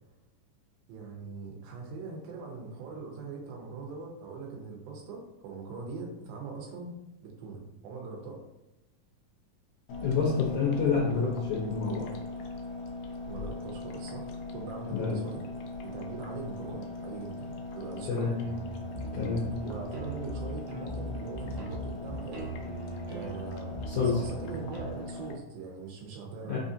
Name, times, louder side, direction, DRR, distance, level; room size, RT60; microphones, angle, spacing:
voice 1, 0.9-8.4 13.3-15.4 15.8-18.3 19.6-22.5 23.1-26.6, right 4 dB, 90° right, 1 dB, 2.6 m, -41 dB
sound 1, 9.9-25.4, left 3 dB, 90° left, 1.7 m, -40 dB
voice 2, 10.0-12.1 14.9-15.3 18.1-18.3 19.1-19.5 23.9-24.2 26.5-26.6, left 5 dB, 75° left, -5 dB, 2.1 m, -28 dB
sound 2, 18.4-24.9, right 2 dB, 70° right, 1.3 m, -39 dB
5.6 x 2.5 x 2.6 m, 0.93 s
omnidirectional pair, 4.1 m